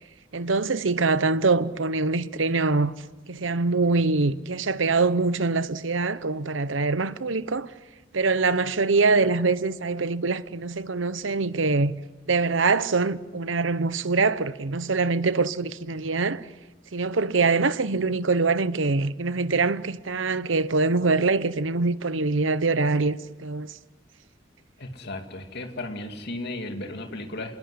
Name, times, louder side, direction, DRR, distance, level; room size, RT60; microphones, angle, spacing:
voice 1, 0.3-2.9 3.3-7.7 8.1-11.9 12.3-16.4 16.9-23.7, right 3 dB, 80° right, 1.0 m, -24 dB
voice 2, 24.8-27.6, left 2 dB, 60° left, 2.5 m, -35 dB
27.5 x 20.0 x 9.8 m
head